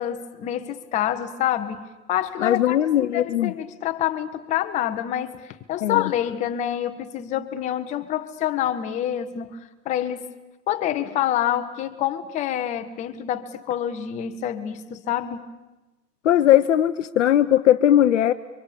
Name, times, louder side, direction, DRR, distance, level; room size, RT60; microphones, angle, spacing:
voice 1, 0.0-10.3 10.7-15.5, left 11 dB, 15° left, 8 dB, 0.9 m, -27 dB
voice 2, 2.4-3.5 5.8-6.1 16.2-18.3, left 11 dB, 45° left, 10 dB, 0.8 m, -19 dB
30.0 x 24.5 x 7.0 m, 1.1 s
hypercardioid pair, 140°, 50 cm